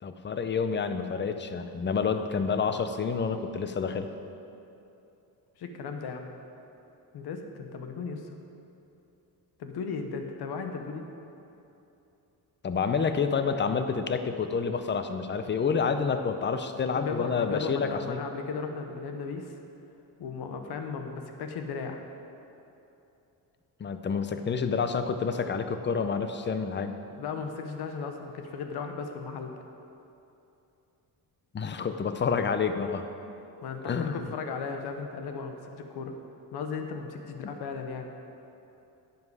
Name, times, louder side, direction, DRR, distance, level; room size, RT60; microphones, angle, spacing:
voice 1, 0.0-4.1 12.6-18.2 23.8-27.0 31.5-33.1 33.9-34.3, left 5 dB, 30° left, 9 dB, 0.6 m, -28 dB
voice 2, 5.6-6.3 7.1-8.4 9.6-11.1 17.0-19.5 20.2-22.0 27.2-29.5 33.6-36.1 36.5-38.1, left 5 dB, 70° left, 5 dB, 1.1 m, -36 dB
10.5 x 7.9 x 4.8 m, 2.8 s
cardioid pair, 105°, 40 cm